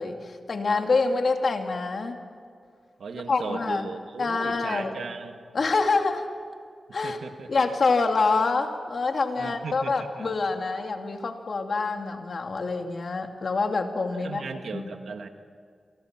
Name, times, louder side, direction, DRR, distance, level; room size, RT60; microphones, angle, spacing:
voice 1, 0.0-2.2 3.3-3.9 4.2-4.9 5.5-6.3 6.9-7.2 7.5-14.4 14.7-14.9, left 3 dB, 60° left, 4 dB, 2.5 m, -26 dB
voice 2, 3.0-5.4 6.9-7.5 9.4-10.3 14.1-15.3, right 5 dB, 85° right, 6 dB, 2.0 m, -37 dB
29.0 x 24.0 x 6.1 m, 2.1 s
wide cardioid pair, 90°, 0 cm